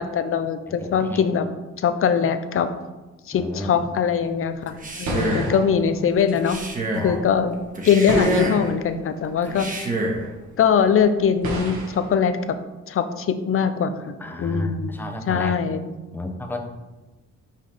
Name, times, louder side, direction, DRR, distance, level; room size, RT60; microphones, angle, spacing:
voice 1, 0.0-1.5 1.8-2.7 3.3-6.6 7.0-7.6 7.8-9.9 10.6-12.6 12.9-14.9 15.3-15.9, left 7 dB, 45° left, 10 dB, 0.6 m, -22 dB
voice 2, 0.7-1.3 3.3-3.9 5.1-6.2 6.9-7.2 9.4-9.6 14.2-15.6 16.1-16.6, left 1 dB, 5° left, 3 dB, 0.7 m, -33 dB
sound 1, 4.2-7.0 7.3-10.0 10.2-12.1, right 1 dB, 70° right, 1.4 m, -33 dB
Male speech man speaking, 4.7-5.6 6.4-7.1 7.7-8.7 9.5-10.2, right 1 dB, 25° right, 1.2 m, -26 dB
5.6 x 4.9 x 3.5 m, 1.1 s
cardioid pair, 90°, 30 cm